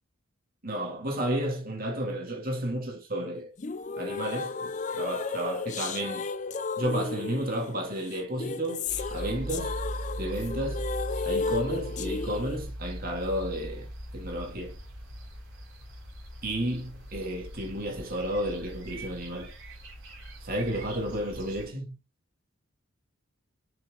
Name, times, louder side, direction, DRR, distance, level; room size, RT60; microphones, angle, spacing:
voice 1, 0.6-3.5 4.0-6.3 6.8-9.8 10.2-10.8 11.2-13.9 14.1-14.8 16.4-19.5 20.4-21.9, right 1 dB, 40° right, 2.7 m, -32 dB
sound 1, 3.6-12.6, left 4 dB, 35° left, 0.5 m, -34 dB
sound 2, 8.8-21.7, right 1 dB, 60° right, 4.1 m, -40 dB
6.9 x 6.7 x 3.8 m
head